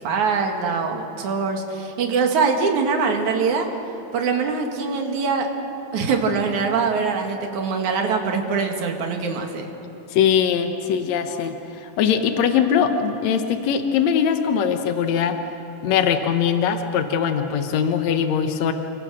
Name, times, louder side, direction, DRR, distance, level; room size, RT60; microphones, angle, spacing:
voice 1, 0.0-3.7 4.1-5.5 5.9-9.7, right 5 dB, 55° right, 3 dB, 2.9 m, -23 dB
voice 2, 10.1-15.4 15.8-18.7, left 7 dB, 85° left, 7 dB, 1.5 m, -21 dB
29.0 x 23.0 x 6.2 m, 2.8 s
omnidirectional pair, 4.6 m